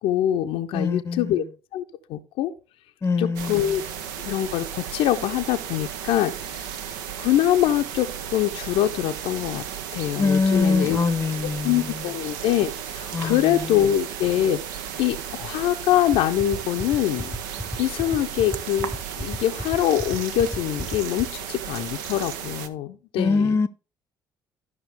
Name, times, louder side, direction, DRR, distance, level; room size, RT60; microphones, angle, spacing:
voice 1, 0.0-1.4 1.7-2.5 3.2-3.8 4.2-9.6 9.9-11.0 11.6-14.6 15.0-17.3 17.8-23.6, left 12 dB, 60° left, 0.6 m, -24 dB
voice 2, 0.7-1.4 3.0-3.7 10.2-12.0 13.1-13.8 23.2-23.7, left 4 dB, 25° left, 0.7 m, -24 dB
sound 1, 3.4-22.7, right 8 dB, 70° right, 0.7 m, -34 dB
sound 2, 16.1-21.2, left 1 dB, ahead, 1.0 m, -31 dB
13.0 x 5.7 x 3.4 m
figure-of-eight pair, 50°, 11 cm